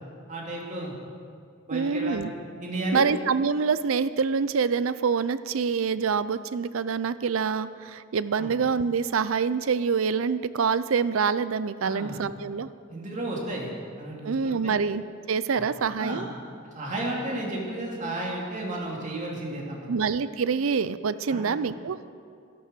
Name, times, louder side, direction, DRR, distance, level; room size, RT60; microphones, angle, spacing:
voice 1, 0.3-0.9 1.7-2.3 2.6-3.0 8.4-8.5 11.8-12.2 12.9-14.7 15.5-15.7 16.0-16.3 16.7-19.9 21.3-21.5, right 1 dB, 35° right, -2 dB, 2.7 m, -33 dB
voice 2, 1.7-2.3 2.9-12.7 14.2-16.3 19.9-22.1, right 5 dB, 75° right, 15 dB, 0.5 m, -26 dB
12.5 x 12.0 x 6.8 m, 2.3 s
head